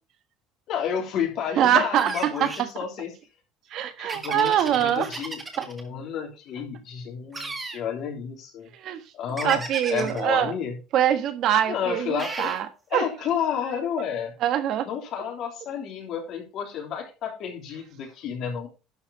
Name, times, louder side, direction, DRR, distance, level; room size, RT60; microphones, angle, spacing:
voice 1, 0.7-3.1 4.0-8.7 9.1-9.6 9.9-10.7 11.7-12.5 12.9-14.3 14.8-18.7, left 8 dB, 50° left, 3.1 m, -31 dB
voice 2, 1.6-2.5 3.7-5.1 5.6-5.7 8.8-9.0 9.4-10.5 10.9-12.7 12.9-13.0 14.4-14.9, right 10 dB, 50° right, 1.3 m, -23 dB
sound 1, 1.9-2.7 4.1-5.8 7.3-7.8 9.4-10.2 12.2-12.6, right 3 dB, 15° right, 1.9 m, -35 dB
11.5 x 4.9 x 5.2 m
cardioid pair, 140°, 0 cm